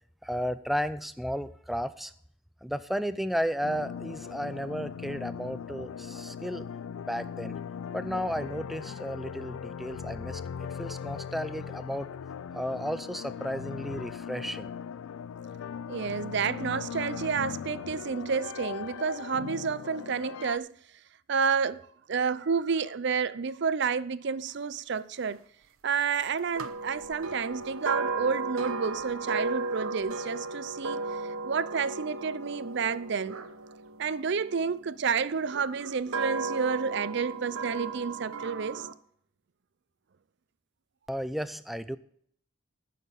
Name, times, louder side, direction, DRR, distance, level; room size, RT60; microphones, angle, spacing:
voice 1, 0.2-2.1 2.6-6.6 7.0-7.6 7.9-12.1 12.5-14.7 41.1-42.0, equal, ahead, 0.4 m, -33 dB
sound 1, 3.6-20.6, left 7 dB, 85° left, 0.4 m, -39 dB
voice 2, 15.9-20.8 21.3-25.4 25.8-33.4 34.0-38.9, right 5 dB, 55° right, 0.5 m, -30 dB
sound 2, 26.6-34.7 35.4-38.9, right 3 dB, 85° right, 0.9 m, -35 dB
14.0 x 6.7 x 5.3 m
head